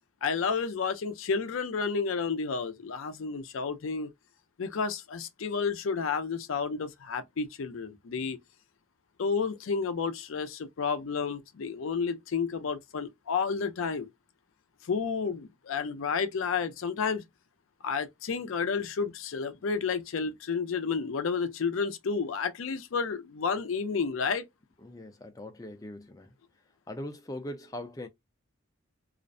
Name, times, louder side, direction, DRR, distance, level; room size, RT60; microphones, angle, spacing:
voice 1, 0.2-4.1 4.6-8.4 9.2-14.1 14.8-17.3 17.8-24.5, left 5 dB, 75° left, 0.5 m, -31 dB
voice 2, 24.8-26.3 26.9-28.1, left 1 dB, 15° left, 0.4 m, -41 dB
2.4 x 2.0 x 2.5 m
head